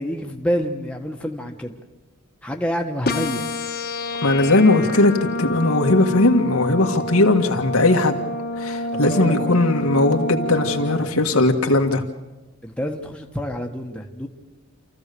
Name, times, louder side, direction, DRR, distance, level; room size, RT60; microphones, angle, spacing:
voice 1, 0.0-1.7 2.4-3.5 8.9-9.6 12.6-14.3, equal, 5° left, 1 dB, 1.4 m, -27 dB
sound 1, 3.1-11.1, left 1 dB, 45° left, 1.4 m, -28 dB
voice 2, 4.2-8.2 8.6-12.0, left 2 dB, 85° left, 3 dB, 1.8 m, -18 dB
27.5 x 15.0 x 6.9 m, 1.2 s
head